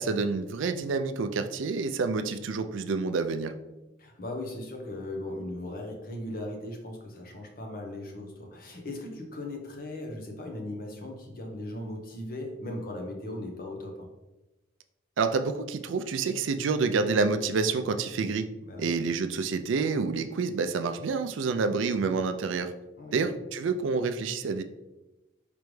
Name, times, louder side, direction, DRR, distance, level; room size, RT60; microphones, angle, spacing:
voice 1, 0.0-3.5 15.2-18.5 18.8-22.7 23.1-24.6, right 4 dB, 80° right, 9 dB, 0.4 m, -28 dB
voice 2, 4.0-14.1 18.6-18.9 23.0-23.3, left 1 dB, 45° left, 1 dB, 0.9 m, -38 dB
5.1 x 3.3 x 3.1 m, 1.0 s
head